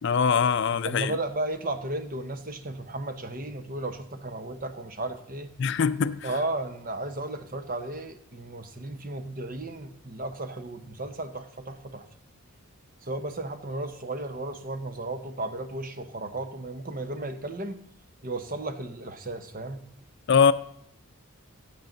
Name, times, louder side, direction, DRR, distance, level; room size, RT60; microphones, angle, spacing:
voice 1, 0.0-1.1 5.6-6.3 20.3-20.5, left 6 dB, 50° left, 0.4 m, -22 dB
voice 2, 0.8-5.5 6.2-12.1 13.0-17.8 18.2-19.8, right 2 dB, 40° right, 0.9 m, -34 dB
15.0 x 8.7 x 3.9 m
head